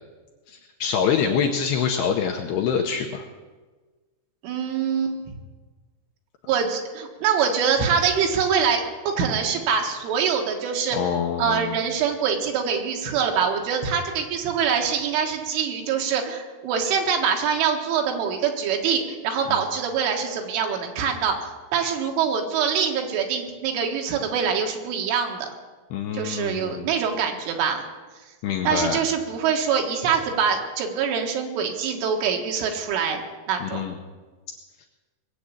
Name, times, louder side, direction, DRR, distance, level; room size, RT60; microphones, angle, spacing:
voice 1, 0.5-3.3 10.9-11.8 25.9-26.9 28.4-29.0 33.6-33.9 34.8-34.9, left 7 dB, 80° left, 2 dB, 2.5 m, -25 dB
voice 2, 4.4-5.4 6.5-25.5 26.1-27.8 28.6-33.2 33.5-33.8, right 6 dB, 80° right, 3 dB, 4.0 m, -24 dB
20.5 x 7.8 x 8.5 m, 1.3 s
omnidirectional pair, 5.7 m